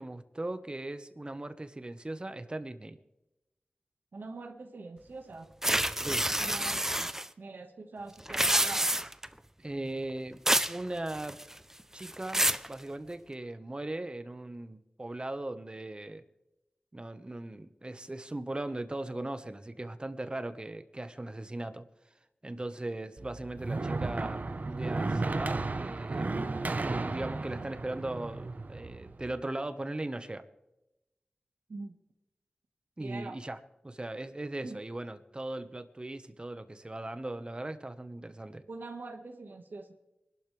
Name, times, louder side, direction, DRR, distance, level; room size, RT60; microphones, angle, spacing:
voice 1, 0.0-3.0 6.0-6.3 9.6-10.4 10.7-11.4 11.9-16.2 16.9-21.8 22.4-26.4 26.8-30.4 33.0-38.6, right 2 dB, 30° right, 10 dB, 1.2 m, -39 dB
voice 2, 4.1-5.5 6.1-7.1 7.4-8.9 31.7-31.9 33.0-33.4 34.6-34.8 38.7-39.9, right 3 dB, 80° right, 5 dB, 1.5 m, -43 dB
sound 1, 5.6-7.3 8.2-9.3 10.5-10.8 11.1-11.6 12.0-12.7, right 1 dB, 15° right, 0.6 m, -28 dB
sound 2, 23.2-29.3, right 3 dB, 55° right, 1.0 m, -34 dB
25.0 x 12.0 x 3.4 m, 0.94 s
wide cardioid pair, 60°, 3 cm